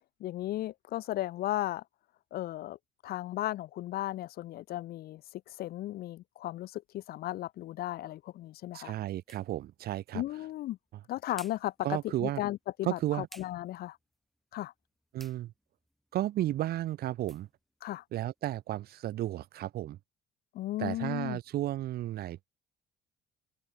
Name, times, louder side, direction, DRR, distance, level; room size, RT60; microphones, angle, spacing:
voice 1, 0.2-1.8 2.3-2.8 3.0-8.9 10.1-10.8 11.1-14.0 14.5-14.7 17.8-18.0 20.5-21.4, left 15 dB, 65° left, 0.8 m, -35 dB
sound 1, 7.5-19.1, equal, ahead, 4.7 m, -60 dB
voice 2, 8.7-10.2 11.8-12.4 12.8-13.3 15.1-15.5 16.1-17.5 18.1-20.0 20.8-22.4, right 14 dB, 65° right, 1.3 m, -33 dB
cardioid pair, 110°, 17 cm